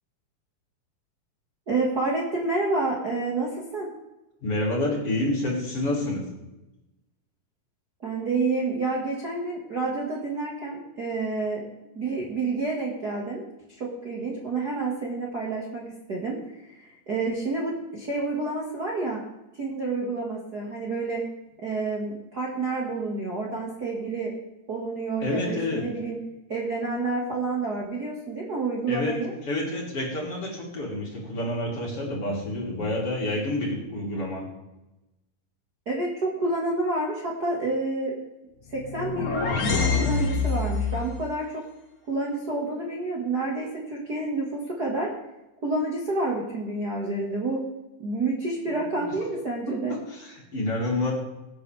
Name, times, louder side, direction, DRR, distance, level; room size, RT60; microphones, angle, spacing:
voice 1, 1.7-3.9 8.0-11.7 12.0-13.4 13.8-15.8 16.1-19.2 19.6-21.2 21.6-24.3 24.7-26.2 26.5-29.3 35.9-38.1 38.7-41.6 42.1-45.1 45.6-47.6 48.0-50.0, right 3 dB, 35° right, -3 dB, 1.9 m, -29 dB
voice 2, 4.4-6.3 25.2-25.9 28.9-29.2 29.5-34.5 48.7-49.0 49.7-51.1, left 1 dB, 40° left, -3 dB, 4.2 m, -28 dB
sound 1, 38.7-41.0, left 4 dB, 55° left, 3.2 m, -25 dB
23.0 x 9.0 x 3.5 m, 0.97 s
omnidirectional pair, 4.0 m